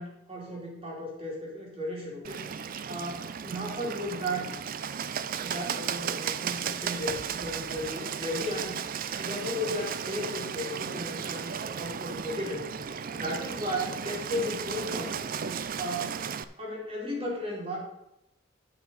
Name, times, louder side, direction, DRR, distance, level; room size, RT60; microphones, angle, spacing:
voice 1, 0.0-4.5 5.4-15.2 15.8-16.2 16.6-17.8, equal, 30° right, -3 dB, 3.2 m, -35 dB
Bird, 2.2-16.4, right 7 dB, 45° right, 0.4 m, -35 dB
9.7 x 6.1 x 5.6 m, 0.83 s
head